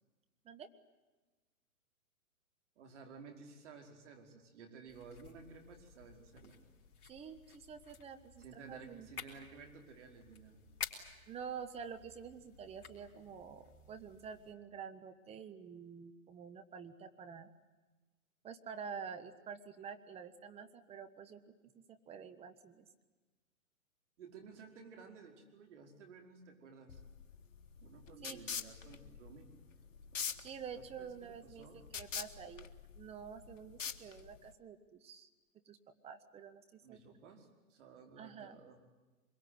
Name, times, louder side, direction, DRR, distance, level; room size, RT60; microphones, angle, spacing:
voice 1, 2.7-6.6 8.4-10.6 24.2-27.0 27.8-29.5 30.8-31.8 36.8-38.8, right 5 dB, 55° right, 4 dB, 5.1 m, -55 dB
sound 1, 4.9-14.5, left 6 dB, 40° left, 4.2 m, -52 dB
voice 2, 7.0-9.1 11.3-17.5 18.4-22.9 28.2-28.4 30.4-31.7 31.9-32.7 32.9-35.3 35.6-35.8 36.0-37.1 38.2-38.6, right 6 dB, 15° right, 6 dB, 1.2 m, -48 dB
sound 2, 26.9-34.5, left 7 dB, 60° left, 1.7 m, -45 dB
24.5 x 22.5 x 9.7 m, 1.2 s
figure-of-eight pair, 125°, 43 cm